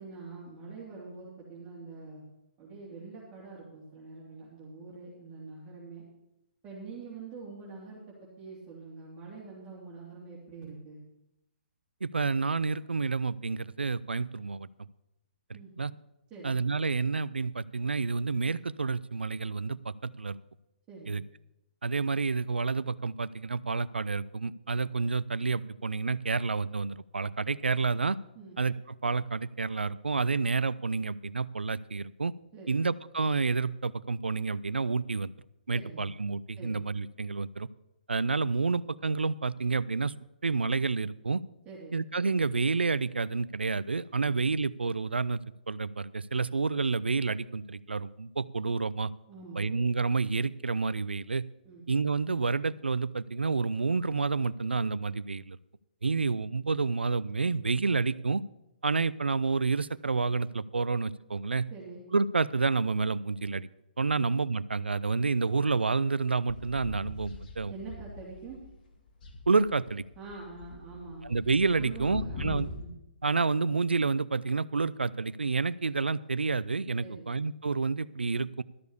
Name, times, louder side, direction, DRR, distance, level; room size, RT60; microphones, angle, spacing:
voice 1, 0.0-2.2 2.6-6.0 6.6-11.0 15.5-15.7 16.3-16.6 20.9-21.2 28.3-28.6 32.5-32.8 35.7-36.0 36.6-36.8 41.6-42.0 49.3-49.7 51.6-51.8 61.7-62.0 67.7-68.6 70.2-71.3 71.8-72.9 77.0-77.3, right 4 dB, 20° right, -7 dB, 3.4 m, -45 dB
voice 2, 12.0-14.7 15.5-15.9 16.4-20.4 21.1-21.2 21.8-28.2 28.6-32.3 32.7-35.3 35.7-37.7 38.1-40.1 40.4-41.4 41.9-45.4 45.7-49.1 49.6-51.4 51.9-55.6 56.0-58.4 58.8-61.7 62.1-63.7 64.0-67.7 69.5-70.0 71.2-72.7 73.2-78.6, right 4 dB, 85° right, 20 dB, 0.4 m, -29 dB
sound 1, 66.5-68.8 69.1-72.8, left 2 dB, 55° left, 2.2 m, -41 dB
13.0 x 6.9 x 6.6 m, 0.89 s
figure-of-eight pair, 135°, 6 cm